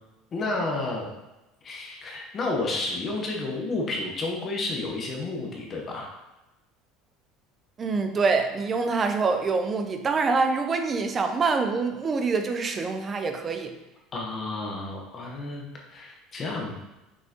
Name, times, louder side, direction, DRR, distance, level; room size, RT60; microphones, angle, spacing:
voice 1, 0.3-1.1 1.6-6.2 14.1-16.7, left 2 dB, 25° left, 0 dB, 0.9 m, -31 dB
voice 2, 7.8-13.8, right 4 dB, 20° right, 6 dB, 0.5 m, -25 dB
6.2 x 5.5 x 2.8 m, 0.98 s
cardioid pair, 180°, 0 cm